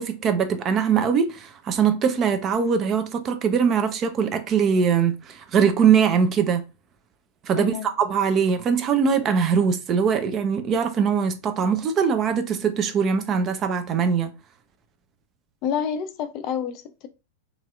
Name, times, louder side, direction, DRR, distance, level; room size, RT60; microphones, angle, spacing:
voice 1, 0.0-6.6 7.4-14.3, right 6 dB, 30° right, 0.4 m, -22 dB
voice 2, 7.5-7.9 15.6-17.1, left 8 dB, 40° left, 0.4 m, -28 dB
2.9 x 2.7 x 2.3 m
figure-of-eight pair, 90°, 0 cm